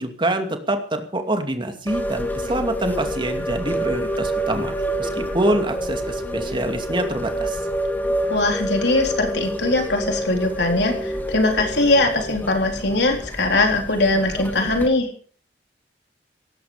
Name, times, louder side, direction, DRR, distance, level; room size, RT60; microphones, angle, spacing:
voice 1, 0.0-7.6, right 1 dB, 30° right, 6 dB, 2.5 m, -25 dB
sound 1, 1.9-14.9, right 1 dB, 10° left, 2.4 m, -28 dB
voice 2, 8.3-15.1, left 2 dB, 70° left, 3 dB, 4.0 m, -21 dB
18.0 x 15.0 x 5.1 m, 0.43 s
head